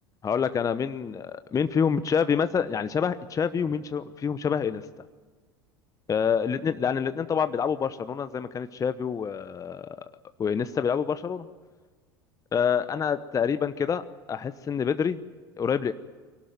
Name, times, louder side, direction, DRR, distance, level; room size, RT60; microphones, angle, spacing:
voice 1, 0.2-4.8 6.1-10.0 10.4-11.5 12.5-15.2 15.6-15.9, left 7 dB, 25° left, 12 dB, 1.0 m, -27 dB
23.5 x 18.5 x 9.3 m, 1.4 s
figure-of-eight pair, 75°, 13 cm